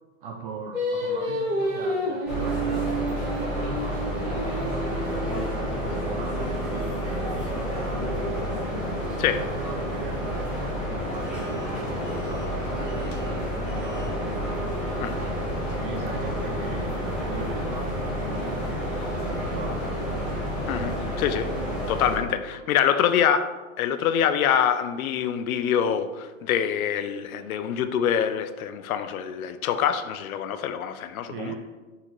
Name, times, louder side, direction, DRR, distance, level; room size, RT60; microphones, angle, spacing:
voice 1, 0.2-8.4 9.2-15.0 15.7-19.0 19.3-20.0 20.8-21.1 21.9-22.0 31.3-31.6, right 5 dB, 45° right, 2 dB, 0.4 m, -40 dB
Singing, 0.7-6.0, equal, 25° right, 1.1 m, -30 dB
sound 1, 2.3-22.2, equal, ahead, 0.7 m, -29 dB
sound 2, 10.9-20.4, left 1 dB, 40° left, 0.6 m, -44 dB
voice 2, 20.7-21.5 21.9-31.5, left 8 dB, 90° left, 11 dB, 0.5 m, -25 dB
4.1 x 3.8 x 3.0 m, 1.3 s
supercardioid pair, 150°, 41 cm